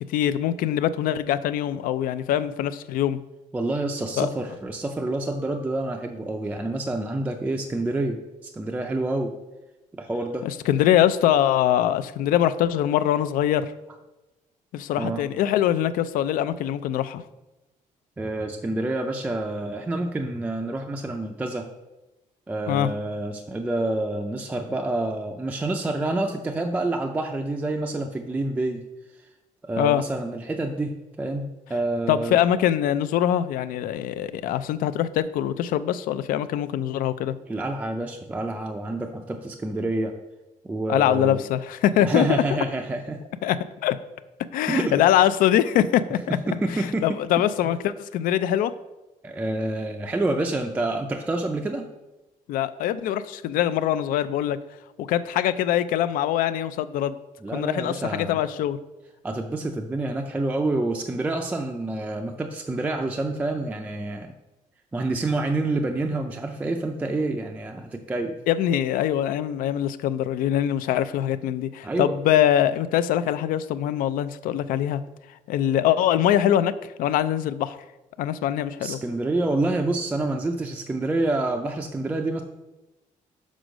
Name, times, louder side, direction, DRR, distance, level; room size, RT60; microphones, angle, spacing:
voice 1, 0.1-3.2 4.2-4.3 10.4-13.7 14.7-17.2 22.7-22.9 29.8-30.0 32.1-37.3 40.9-42.6 43.4-43.6 43.8-44.0 44.5-46.4 46.7-48.7 52.5-54.6 55.1-57.2 57.5-58.8 68.5-75.0 75.5-76.7 77.0-77.8 78.2-79.0, left 11 dB, 85° left, 13 dB, 0.4 m, -23 dB
voice 2, 3.5-9.3 9.9-10.5 15.0-15.2 18.2-21.7 22.5-28.8 29.6-32.4 37.5-40.1 40.6-41.4 42.0-43.2 44.7-45.0 46.3-47.1 47.6-47.7 49.2-51.9 57.4-58.4 59.2-64.3 64.9-68.3 71.8-72.2 78.8-82.4, right 2 dB, 10° right, 3 dB, 0.3 m, -28 dB
6.3 x 5.2 x 5.0 m, 1.0 s
cardioid pair, 180°, 14 cm